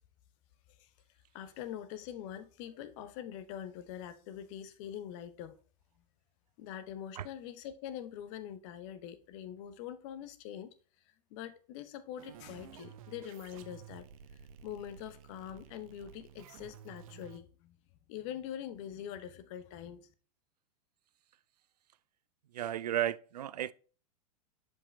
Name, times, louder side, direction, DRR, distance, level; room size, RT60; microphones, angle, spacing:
voice 1, 1.3-5.6 6.6-10.7 11.1-14.1 14.6-17.8 18.1-20.1, left 10 dB, 50° left, 0.9 m, -44 dB
sound 1, 12.2-17.4, right 9 dB, 60° right, 0.9 m, -53 dB
voice 2, 22.5-23.7, right 12 dB, 85° right, 0.4 m, -33 dB
7.2 x 5.5 x 3.3 m
hypercardioid pair, 105°, 20 cm